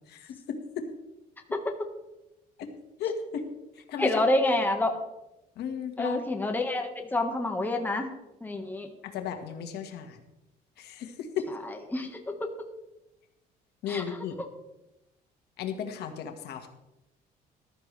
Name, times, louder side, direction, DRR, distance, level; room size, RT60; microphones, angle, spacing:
voice 1, 0.1-0.8 2.6-2.7 3.0-3.4 3.8-4.2 5.6-6.2 9.0-10.2 10.8-11.5 13.8-14.4 15.6-16.7, left 7 dB, 75° left, 5 dB, 1.7 m, -35 dB
voice 2, 1.5-1.9 4.0-5.0 6.0-8.1 8.4-8.9 11.6-12.7 13.9-14.2, left 2 dB, 10° left, 3 dB, 1.6 m, -28 dB
14.5 x 12.5 x 3.4 m, 0.97 s
cardioid pair, 110°, 17 cm